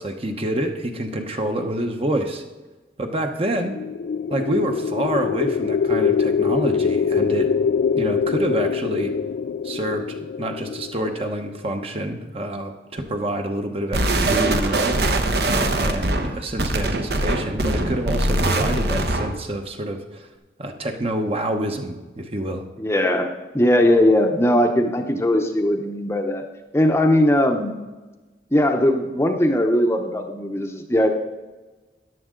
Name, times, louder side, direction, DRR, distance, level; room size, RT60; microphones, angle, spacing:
voice 1, 0.0-2.4 3.0-3.7 4.3-7.5 8.0-9.1 9.6-10.0 10.4-15.0 15.5-20.3 20.6-22.6, right 1 dB, 30° right, 5 dB, 1.0 m, -27 dB
sound 1, 3.6-11.7, left 6 dB, 65° left, 0.3 m, -24 dB
sound 2, 13.9-19.4, right 2 dB, 60° right, 1.0 m, -22 dB
voice 2, 22.8-23.3 23.5-26.4 26.7-27.8 28.5-31.1, left 1 dB, 15° left, 4 dB, 0.8 m, -19 dB
13.5 x 10.5 x 3.8 m, 1.2 s
head